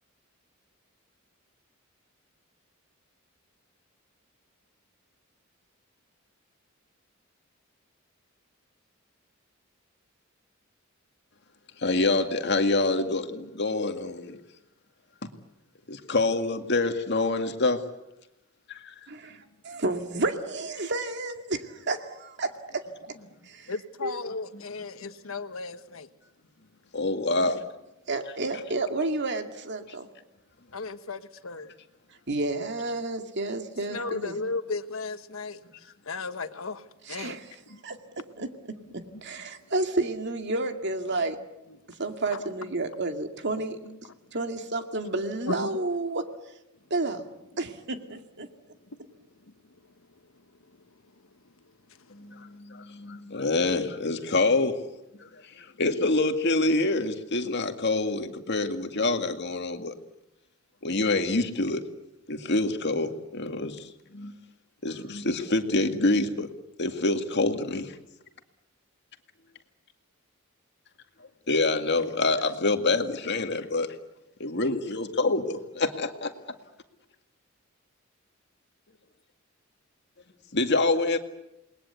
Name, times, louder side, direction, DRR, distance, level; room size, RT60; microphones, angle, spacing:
voice 1, 11.8-14.4 15.9-17.8 18.7-18.9 26.9-27.6 52.1-54.8 55.2-55.3 55.6-59.9 60.8-61.8 62.3-64.3 64.8-66.5 66.8-67.9 71.5-73.9 74.4-76.3 80.5-81.2, left 2 dB, 55° left, 2.0 m, -26 dB
voice 2, 19.1-22.8 23.5-23.7 24.0-24.2 27.4-27.5 28.1-30.1 32.3-34.3 37.1-37.4 37.8-38.0 38.4-38.5 39.2-41.4 42.0-43.8 44.3-46.3 46.9-47.2 47.6-48.5, right 2 dB, 55° right, 2.3 m, -30 dB
voice 3, 23.7-26.1 30.7-31.7 33.9-37.4 37.7-37.8 39.1-39.2 42.3-42.5 43.8-44.1 45.5-45.7 48.9-49.0 51.9-52.1, left 3 dB, 75° left, 1.4 m, -36 dB
28.5 x 20.5 x 8.3 m
head